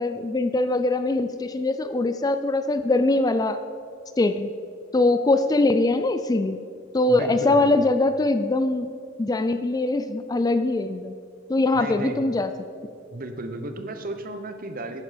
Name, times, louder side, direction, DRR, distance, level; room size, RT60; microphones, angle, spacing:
voice 1, 0.0-3.6 4.2-4.5 4.9-6.6 6.9-8.9 9.2-11.1 11.5-12.5, left 2 dB, 20° left, 10 dB, 0.3 m, -22 dB
voice 2, 7.1-7.7 11.7-12.2 13.1-15.0, right 1 dB, 45° right, 7 dB, 0.9 m, -34 dB
11.0 x 9.6 x 5.1 m, 2.5 s
head